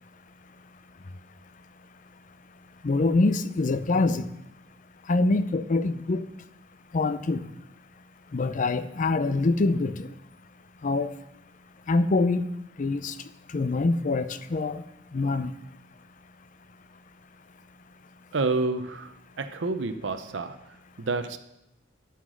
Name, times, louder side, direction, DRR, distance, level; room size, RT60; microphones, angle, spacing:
voice 1, 2.8-4.3 5.1-6.3 6.9-7.5 8.3-10.1 10.8-11.1 11.9-12.5 12.8-13.1 13.5-14.8 15.1-15.5, left 3 dB, 45° left, 13 dB, 0.5 m, -25 dB
voice 2, 18.3-21.4, right 3 dB, 70° right, 9 dB, 0.7 m, -29 dB
11.0 x 5.8 x 6.1 m, 0.86 s
head